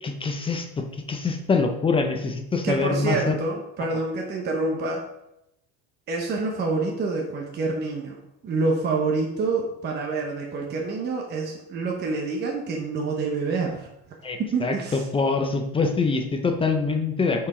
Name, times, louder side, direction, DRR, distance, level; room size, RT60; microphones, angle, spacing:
voice 1, 0.0-3.4 14.2-17.5, left 4 dB, 15° left, 4 dB, 0.5 m, -25 dB
voice 2, 2.6-5.0 6.1-8.2 8.4-13.9 14.4-15.1, right 3 dB, 30° right, 0 dB, 0.9 m, -27 dB
7.2 x 4.8 x 4.9 m, 0.84 s
cardioid pair, 160°, 36 cm